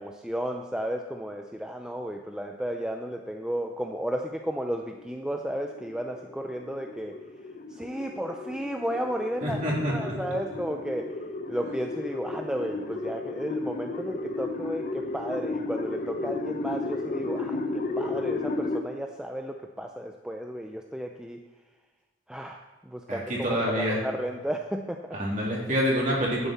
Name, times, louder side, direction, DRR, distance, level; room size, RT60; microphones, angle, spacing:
voice 1, 0.0-7.2 7.8-11.1 11.5-21.4 22.3-22.6 22.9-23.2 23.7-25.2, equal, 5° right, 3 dB, 0.4 m, -33 dB
sound 1, 4.4-18.8, left 3 dB, 40° left, 0.7 m, -34 dB
voice 2, 9.4-10.2 23.1-24.0 25.1-26.5, equal, 40° right, -4 dB, 2.9 m, -27 dB
11.0 x 9.0 x 4.2 m, 1.2 s
head